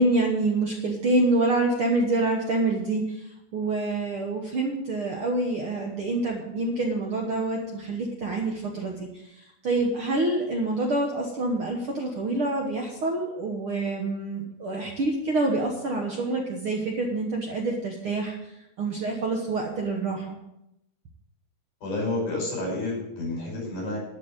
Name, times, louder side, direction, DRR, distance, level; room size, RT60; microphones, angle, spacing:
voice 1, 0.0-3.2 3.5-9.1 9.6-18.3 18.8-20.4, right 2 dB, 55° right, 1 dB, 1.7 m, -26 dB
voice 2, 21.8-24.0, left 2 dB, 65° left, -3 dB, 6.9 m, -30 dB
12.0 x 5.4 x 8.8 m, 0.86 s
omnidirectional pair, 3.8 m